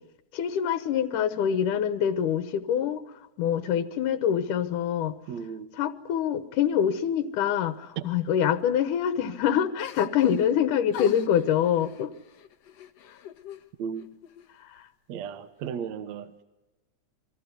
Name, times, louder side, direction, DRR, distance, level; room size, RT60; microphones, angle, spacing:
voice 1, 0.3-3.0 3.4-5.2 5.8-12.1 14.6-14.8, left 9 dB, 85° left, 2.7 m, -25 dB
voice 2, 5.3-5.7 8.0-8.1 13.8-14.0 15.1-16.4, right 7 dB, 65° right, 2.3 m, -35 dB
sound 1, 9.8-10.6 10.9-13.7 14.0-14.8, left 9 dB, 60° left, 2.2 m, -41 dB
27.5 x 23.0 x 9.5 m
omnidirectional pair, 3.6 m